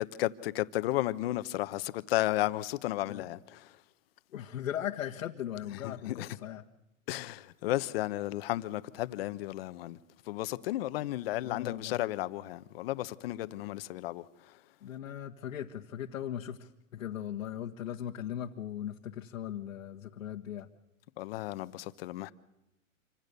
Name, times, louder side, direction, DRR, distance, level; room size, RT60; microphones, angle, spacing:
voice 1, 0.0-3.7 5.8-6.3 7.1-10.0 10.3-14.2 21.2-22.3, left 16 dB, 45° left, 1.1 m, -33 dB
voice 2, 4.3-6.6 11.4-12.0 14.8-20.7, left 10 dB, 80° left, 1.6 m, -38 dB
27.0 x 25.5 x 6.9 m
hypercardioid pair, 155°, 40 cm